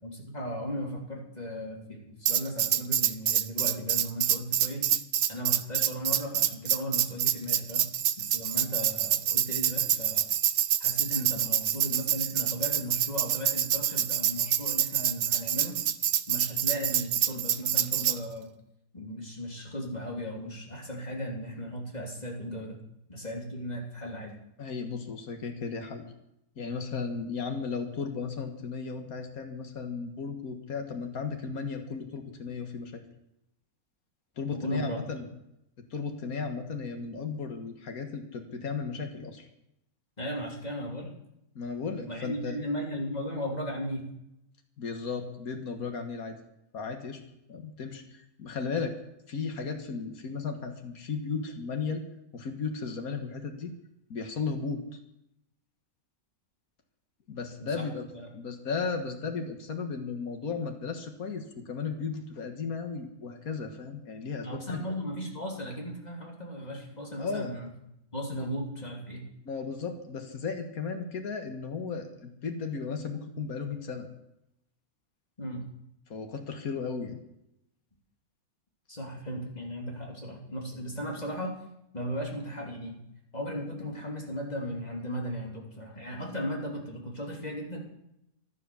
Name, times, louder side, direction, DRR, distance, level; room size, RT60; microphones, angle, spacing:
voice 1, 0.0-4.8 5.3-7.8 8.2-10.3 10.8-15.8 16.3-18.5 18.9-22.8 23.1-24.3 34.5-35.0 40.2-41.1 42.0-44.0 57.6-57.9 58.1-58.3 64.4-67.7 68.1-69.2 75.4-75.6 78.9-81.6 81.9-82.9 83.3-87.8, equal, 30° left, 0 dB, 3.2 m, -36 dB
Tambourine, 2.3-18.2, right 11 dB, 70° right, 1.1 m, -27 dB
voice 2, 24.6-26.0 26.6-33.0 34.4-35.3 35.8-39.5 41.6-42.6 44.8-46.4 46.7-47.2 47.5-48.9 49.3-52.0 52.3-53.7 54.1-55.0 57.3-58.0 58.3-64.9 67.2-67.5 68.3-68.5 69.5-74.1 76.1-77.2, left 5 dB, 85° left, 5 dB, 1.9 m, -35 dB
15.5 x 11.5 x 7.0 m, 0.84 s
omnidirectional pair, 1.5 m